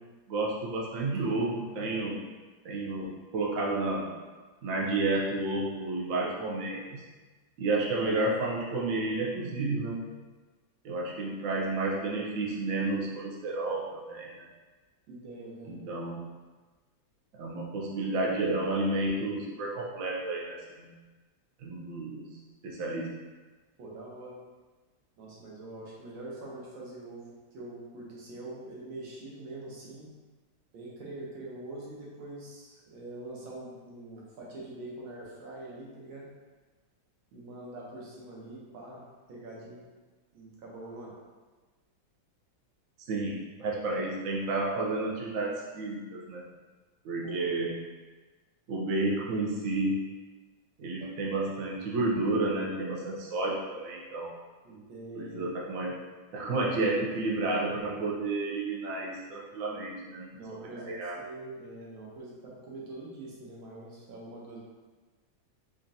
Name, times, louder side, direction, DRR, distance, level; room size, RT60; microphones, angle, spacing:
voice 1, 0.3-2.2 2.6-4.1 4.6-7.0 7.6-10.1 10.8-14.5 15.7-16.2 17.3-20.9 21.6-22.3 22.6-23.2 43.0-46.4 47.0-47.8 48.7-50.1 50.8-54.3 55.1-56.0 56.3-60.3 60.8-61.2, right 2 dB, 65° right, -3 dB, 0.8 m, -31 dB
voice 2, 15.1-15.8 23.8-24.4 25.2-30.1 30.7-36.3 37.3-39.0 39.3-39.9 40.3-41.2 47.2-47.5 54.6-55.4 60.3-64.6, right 2 dB, 85° right, -5 dB, 1.7 m, -44 dB
5.1 x 2.5 x 2.7 m, 1.3 s
omnidirectional pair, 2.1 m